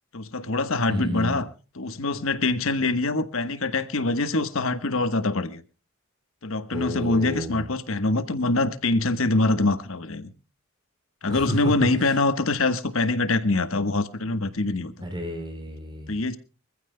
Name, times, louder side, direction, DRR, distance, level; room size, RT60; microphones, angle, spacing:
voice 1, 0.1-1.5 1.7-5.6 6.4-10.3 11.2-14.9 16.1-16.4, left 2 dB, 75° left, 10 dB, 1.2 m, -24 dB
voice 2, 0.9-1.4 6.7-7.7 11.3-11.6 15.0-16.2, equal, 20° right, 6 dB, 3.6 m, -32 dB
25.0 x 15.0 x 2.2 m, 0.34 s
head